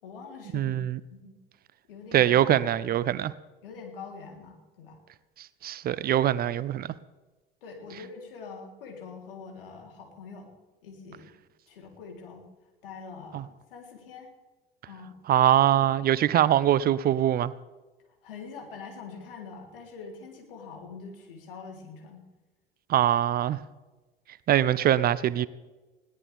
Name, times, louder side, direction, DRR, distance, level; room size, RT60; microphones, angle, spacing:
voice 1, 0.0-0.8 1.1-1.3 1.9-2.8 3.6-5.0 7.6-10.5 10.8-11.3 11.7-12.5 12.8-14.3 14.9-15.2 18.2-22.3, left 5 dB, 70° left, 3.5 m, -44 dB
voice 2, 0.5-1.0 2.1-3.3 5.4-6.9 13.3-13.4 15.3-17.5 22.9-23.6 24.5-25.5, right 11 dB, 30° right, 0.6 m, -23 dB
21.0 x 16.5 x 3.5 m
figure-of-eight pair, 70°, 29 cm